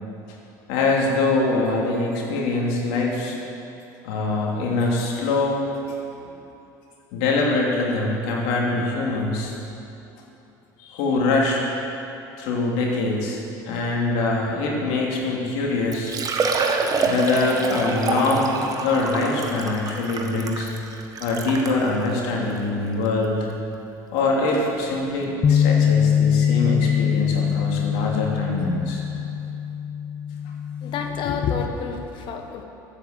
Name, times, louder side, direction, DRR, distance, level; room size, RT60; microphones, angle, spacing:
voice 1, 0.7-3.4 4.0-5.6 7.1-9.5 10.8-11.6 12.4-16.1 17.0-20.7 21.2-23.4 24.1-29.0, left 3 dB, 70° left, -2 dB, 2.8 m, -23 dB
Liquid, 15.5-15.6 15.9-21.8 22.5-22.6 23.1-23.2 24.8-24.9 25.1-25.2, right 4 dB, 35° right, 1.5 m, -26 dB
Bass guitar, 25.4-31.7, left 8 dB, 30° left, 0.5 m, -23 dB
voice 2, 30.8-32.6, left 6 dB, 50° left, 4 dB, 1.6 m, -28 dB
13.5 x 8.4 x 7.7 m, 2.9 s
hypercardioid pair, 85°, 10 cm